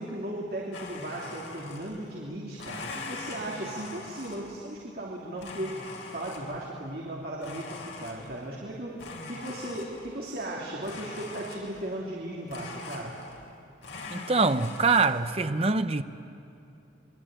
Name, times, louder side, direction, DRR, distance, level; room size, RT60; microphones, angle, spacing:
voice 1, 0.0-13.1, right 1 dB, 50° right, 3.0 m, -36 dB
Domestic sounds home sounds, 0.7-2.1 2.5-4.7 5.4-6.7 7.4-8.5 9.0-10.2 10.8-11.9 12.5-13.6 13.8-15.1, left 3 dB, 80° left, 3.6 m, -42 dB
voice 2, 14.1-16.0, right 4 dB, 30° right, 0.7 m, -24 dB
26.0 x 22.0 x 9.0 m
head